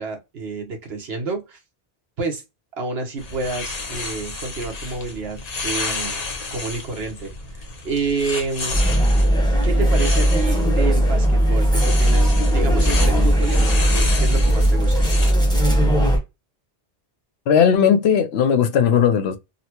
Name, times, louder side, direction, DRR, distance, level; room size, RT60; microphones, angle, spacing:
voice 1, 0.0-1.6 2.2-2.4 2.8-6.2 6.5-8.8 9.6-15.1, right 4 dB, 70° right, 1.2 m, -29 dB
sound 1, 3.2-15.3, left 3 dB, 40° left, 0.8 m, -31 dB
sound 2, 8.7-16.2, right 1 dB, 5° left, 0.9 m, -17 dB
voice 2, 17.5-19.4, left 7 dB, 75° left, 0.8 m, -17 dB
4.0 x 2.1 x 2.8 m
omnidirectional pair, 1.1 m